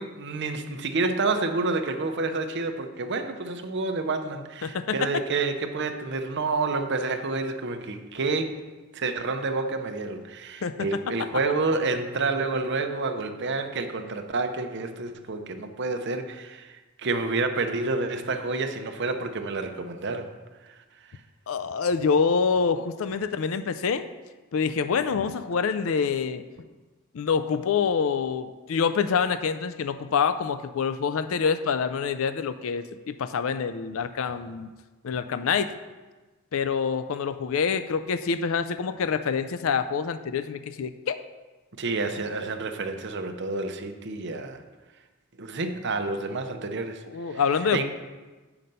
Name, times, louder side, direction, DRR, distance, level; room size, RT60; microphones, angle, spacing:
voice 1, 0.0-8.6 8.9-20.3 20.6-20.8 41.8-44.6 45.4-47.4 47.7-47.8, right 3 dB, 55° right, 6 dB, 0.7 m, -29 dB
voice 2, 4.6-5.0 10.6-10.7 21.5-24.0 24.5-26.4 27.1-34.7 35.0-35.7 36.5-41.2 47.1-47.8, left 6 dB, 65° left, 10 dB, 0.4 m, -26 dB
7.7 x 5.9 x 5.4 m, 1.2 s
head